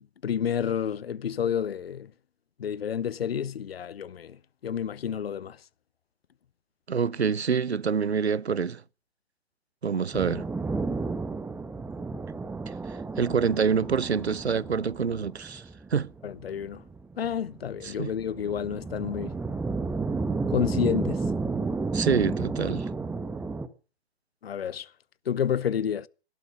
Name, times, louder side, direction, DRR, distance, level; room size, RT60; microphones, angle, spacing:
voice 1, 0.0-2.1 2.6-4.4 4.6-5.6 16.2-16.8 17.2-19.4 20.5-21.2 24.4-24.9 25.3-26.1, left 8 dB, 65° left, 0.9 m, -30 dB
voice 2, 6.9-8.8 9.8-10.5 12.7-12.8 13.2-15.6 15.9-16.1 17.8-18.1 21.9-22.9, right 6 dB, 80° right, 0.8 m, -26 dB
sound 1, 10.1-23.7, right 3 dB, 5° right, 1.0 m, -32 dB
18.5 x 12.5 x 6.3 m
figure-of-eight pair, 120°, 32 cm